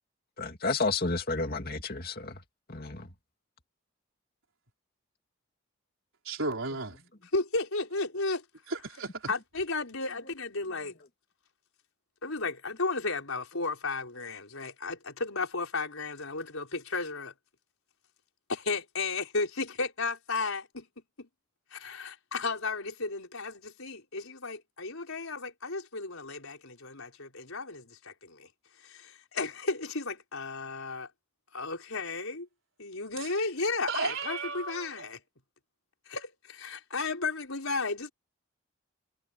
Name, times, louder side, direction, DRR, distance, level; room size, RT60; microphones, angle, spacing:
voice 1, 0.4-2.3 2.7-3.1, left 3 dB, 45° left, 2.6 m, -31 dB
voice 2, 6.2-7.0 8.7-9.3 33.2-33.3 33.9-35.1, right 3 dB, 70° right, 4.2 m, -34 dB
voice 3, 7.3-8.4 9.3-10.9 12.2-17.3 18.5-20.9 21.2-21.3 21.7-28.5 28.8-31.1 31.5-32.5 32.8-35.2 36.1-38.1, left 3 dB, 80° left, 4.8 m, -34 dB
head